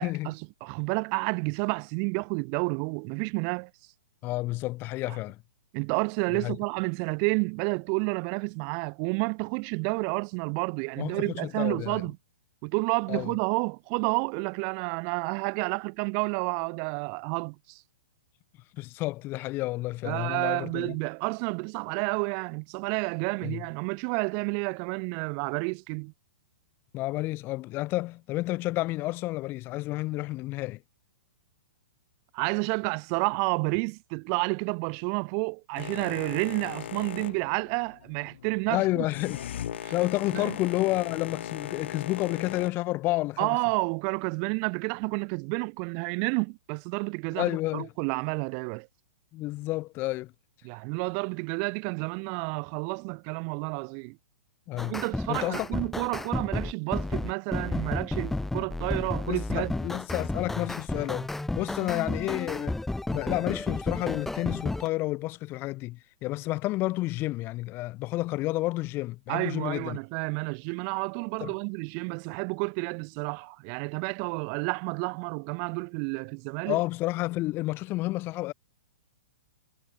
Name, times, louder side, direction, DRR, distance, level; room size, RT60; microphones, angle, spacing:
voice 1, 0.0-3.7 5.1-5.2 5.7-12.2 12.6-17.8 20.0-26.1 32.3-39.0 39.8-39.9 40.3-40.5 43.4-48.9 50.6-54.2 54.8-59.7 69.3-76.8, right 40 dB or more, 40° right, 1.4 m, -30 dB
voice 2, 4.2-5.4 6.3-6.6 11.0-12.0 13.1-13.3 18.7-20.9 23.4-23.6 26.9-30.8 38.7-39.4 39.9-43.6 47.3-47.9 49.3-50.3 54.7-55.0 55.3-55.7 59.3-61.3 61.5-62.8 63.1-70.0 71.4-71.5 76.7-78.5, left 19 dB, 35° left, 5.1 m, -30 dB
Boat Water vehicle, 35.8-42.7, left 10 dB, 65° left, 7.2 m, -39 dB
sound 1, 54.8-64.9, left 2 dB, 5° left, 0.9 m, -32 dB
hypercardioid pair, 120°, 7 cm